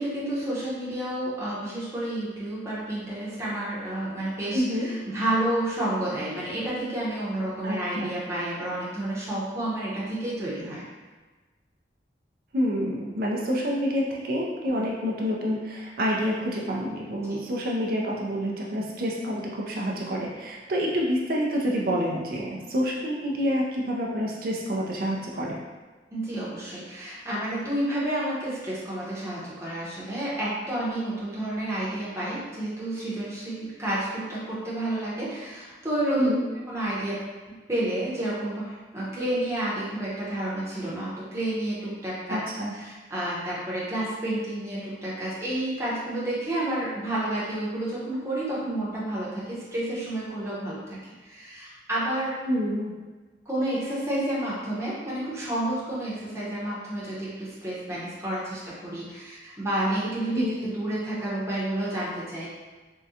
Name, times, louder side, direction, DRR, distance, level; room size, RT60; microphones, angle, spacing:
voice 1, 0.0-10.8 17.3-17.4 26.1-36.3 36.7-37.2 37.7-42.4 42.7-51.0 51.2-52.3 53.5-62.5, right 1 dB, 15° right, -8 dB, 0.8 m, -30 dB
voice 2, 4.5-4.9 7.6-8.1 12.5-25.6 36.2-36.4 42.3-42.7 52.5-52.9 60.3-60.6, equal, 55° right, -2 dB, 0.5 m, -27 dB
3.6 x 2.2 x 2.7 m, 1.3 s
head